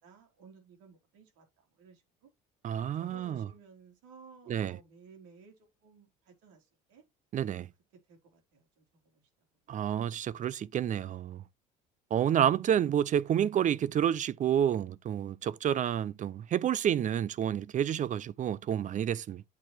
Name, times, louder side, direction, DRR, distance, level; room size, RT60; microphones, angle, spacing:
voice 1, 0.0-1.5 1.7-2.3 2.9-5.5 5.8-7.0 8.1-9.2 15.4-15.5, right 4 dB, 80° right, 4.1 m, -56 dB
voice 2, 2.6-3.5 4.5-4.8 7.3-7.7 9.7-11.4 12.1-19.4, right 9 dB, 45° right, 0.6 m, -29 dB
8.3 x 4.5 x 4.5 m
supercardioid pair, 80°, 18 cm